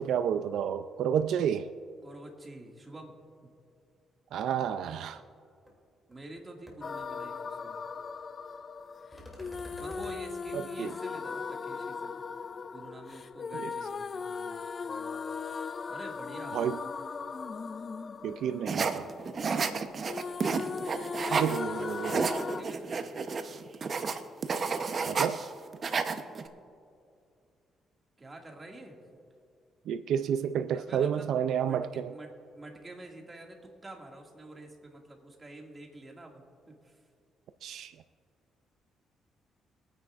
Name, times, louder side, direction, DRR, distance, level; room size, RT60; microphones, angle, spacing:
voice 1, 0.0-1.7 4.3-5.2 10.5-10.9 13.5-13.7 16.5-16.8 18.2-19.1 21.3-22.3 25.1-25.4 29.9-32.1 37.6-37.9, right 8 dB, 75° right, 10 dB, 0.4 m, -30 dB
voice 2, 2.0-3.1 3.4-3.5 6.1-7.8 9.8-12.1 12.7-15.3 15.9-16.6 21.1-23.2 28.2-29.0 30.7-31.3 31.6-36.4 36.8-37.0, right 2 dB, 25° right, 1 dB, 2.1 m, -48 dB
sound 1, 5.7-5.8 6.1-6.4 6.7-6.8 9.1-10.2, left 1 dB, 5° left, 2.7 m, -47 dB
sound 2, 6.8-19.8 20.1-22.6, left 5 dB, 40° left, 0.3 m, -38 dB
sound 3, 18.7-21.6 21.9-25.5 25.7-26.5, right 5 dB, 45° right, 0.8 m, -31 dB
24.0 x 9.7 x 2.5 m, 2.4 s
cardioid pair, 90°, 0 cm